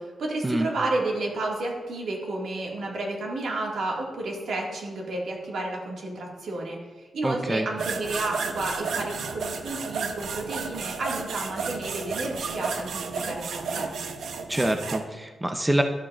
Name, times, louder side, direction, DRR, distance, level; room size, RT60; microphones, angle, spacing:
voice 1, 0.0-13.9, right 2 dB, 65° right, -1 dB, 1.8 m, -31 dB
voice 2, 7.2-7.7 14.5-15.8, right 1 dB, 10° right, 5 dB, 0.4 m, -25 dB
sound 1, 7.8-15.0, right 5 dB, 80° right, 0.6 m, -32 dB
12.5 x 7.4 x 2.4 m, 1.3 s
wide cardioid pair, 150°, 0 cm